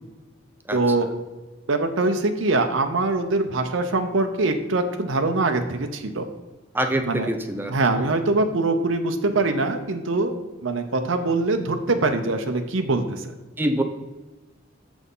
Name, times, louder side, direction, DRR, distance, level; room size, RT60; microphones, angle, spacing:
voice 1, 0.7-1.1 1.7-6.2 7.1-7.3 7.7-13.3, right 2 dB, 90° right, 6 dB, 0.8 m, -23 dB
voice 2, 6.7-7.7 13.6-13.8, right 1 dB, 10° right, 6 dB, 0.7 m, -24 dB
6.9 x 6.2 x 5.4 m, 1.1 s
head